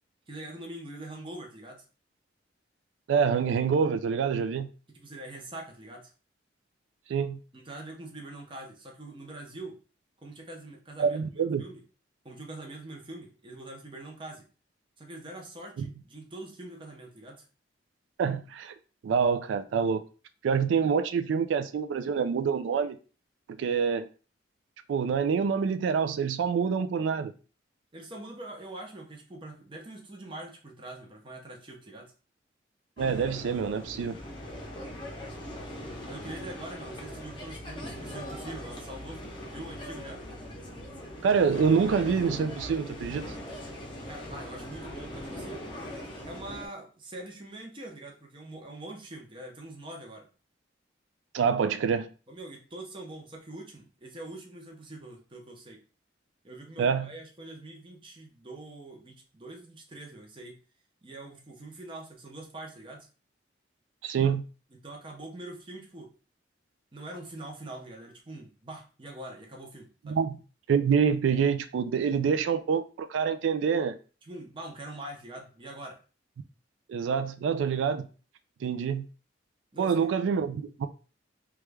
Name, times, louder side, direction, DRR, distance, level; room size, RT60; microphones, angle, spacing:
voice 1, 0.3-1.8 4.9-6.1 7.5-9.8 10.2-11.8 12.2-14.5 15.0-17.4 27.9-32.1 36.0-40.2 44.1-45.6 46.2-50.3 52.3-55.8 56.4-60.6 61.0-63.1 64.7-66.1 66.9-70.2 74.2-76.0 79.7-80.1, right 2 dB, 25° right, 0.7 m, -44 dB
voice 2, 3.1-4.7 7.1-7.4 11.0-11.6 15.8-15.9 18.2-18.7 19.0-20.0 20.4-23.0 23.6-24.1 24.9-27.3 33.0-34.2 41.2-43.3 51.3-52.1 56.8-57.1 64.0-64.4 70.1-70.4 70.7-74.0 76.9-78.1 78.6-79.1 79.8-80.9, right 6 dB, 80° right, 0.3 m, -26 dB
Ionion- Sea sounds, 33.0-46.7, equal, 25° left, 0.7 m, -40 dB
3.1 x 2.3 x 3.3 m
head